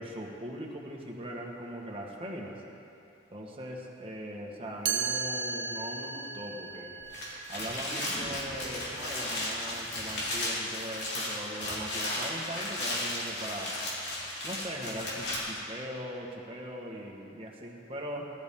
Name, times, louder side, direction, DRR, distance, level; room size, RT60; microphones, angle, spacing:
voice 1, 0.0-2.6 3.3-7.0 7.5-13.8 14.4-18.2, equal, 30° right, -1 dB, 1.7 m, -40 dB
Chime, 4.9-10.7, right 6 dB, 75° right, 0.8 m, -37 dB
sound 1, 7.0-15.4, left 1 dB, 65° left, 3.7 m, -35 dB
sound 2, 7.8-11.9 12.2-12.3, equal, 10° right, 1.6 m, -50 dB
20.0 x 12.5 x 3.8 m, 2.6 s
head